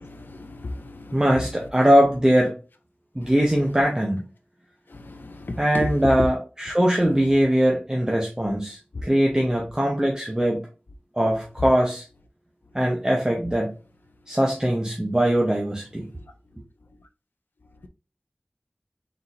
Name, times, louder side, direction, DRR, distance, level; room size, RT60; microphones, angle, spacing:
voice 1, 0.0-1.0 5.1-5.9, left 2 dB, 80° left, 0.4 m, -34 dB
voice 2, 1.1-2.5 3.2-4.2 5.6-10.6 11.2-12.0 12.7-13.7 14.3-16.1, equal, 20° right, 0.9 m, -21 dB
4.1 x 3.8 x 2.6 m
wide cardioid pair, 50°, 3 cm